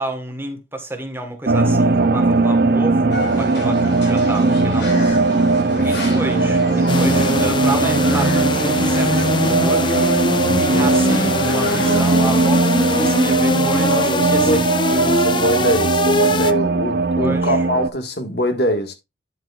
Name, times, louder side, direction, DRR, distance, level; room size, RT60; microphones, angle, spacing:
voice 1, 0.0-5.2 5.8-10.1 10.6-14.6 14.9-15.2 17.2-17.7, right 1 dB, 10° right, 1.3 m, -30 dB
sound 1, 1.5-17.9, right 3 dB, 55° right, 0.6 m, -18 dB
sound 2, 3.1-13.3, left 1 dB, 80° left, 4.4 m, -30 dB
voice 2, 5.7-6.1 10.4-11.0 13.5-14.7 15.0-18.9, left 1 dB, 60° left, 1.6 m, -24 dB
sound 3, 6.9-16.5, left 3 dB, 25° left, 0.5 m, -23 dB
9.8 x 7.7 x 2.4 m
head